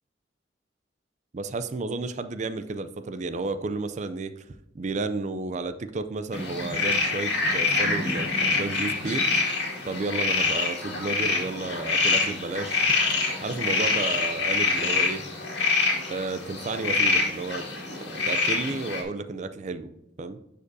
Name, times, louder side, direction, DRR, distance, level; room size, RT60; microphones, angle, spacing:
voice 1, 1.3-4.4 4.7-9.3 9.8-12.9 13.4-15.2 16.1-17.7 18.0-20.4, right 3 dB, 40° right, 11 dB, 0.4 m, -32 dB
sound 1, 6.3-19.0, left 3 dB, 65° left, 1.9 m, -26 dB
11.0 x 5.0 x 2.7 m, 0.87 s
head